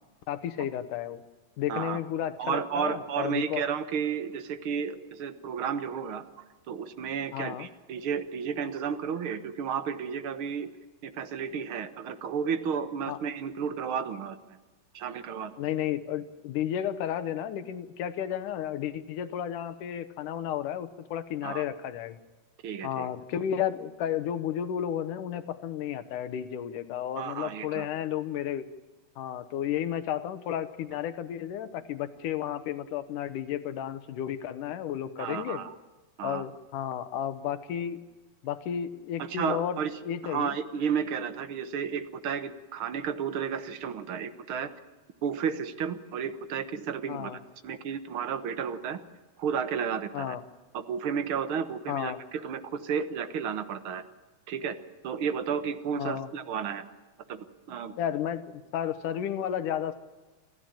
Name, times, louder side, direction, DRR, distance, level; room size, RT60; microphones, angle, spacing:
voice 1, 0.3-1.2 1.6-3.6 7.3-7.7 13.1-13.2 15.6-22.2 22.8-28.7 29.2-35.6 36.2-38.1 38.4-40.6 47.1-47.4 50.1-50.4 51.9-52.2 56.0-56.3 58.0-60.0, left 10 dB, 85° left, 11 dB, 2.7 m, -32 dB
voice 2, 2.4-10.7 11.0-14.4 14.9-15.5 21.4-21.6 22.6-23.1 27.2-27.9 35.2-35.7 36.2-36.4 39.2-40.0 40.2-44.7 45.2-47.3 47.6-49.0 49.4-50.4 50.7-54.0 54.5-54.8 55.0-56.8 57.3-57.9, right 7 dB, 55° right, 10 dB, 1.7 m, -32 dB
28.0 x 14.5 x 8.9 m, 1.2 s
omnidirectional pair, 3.6 m